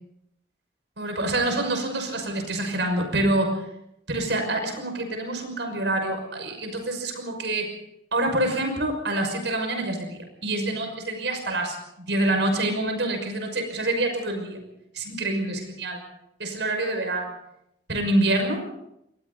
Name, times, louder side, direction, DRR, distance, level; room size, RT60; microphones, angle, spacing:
voice 1, 1.0-3.6 4.1-7.7 8.1-14.6 14.9-16.0 16.4-17.4 17.9-18.6, right 1 dB, 85° right, 5 dB, 6.0 m, -26 dB
29.0 x 22.5 x 4.1 m, 0.79 s
head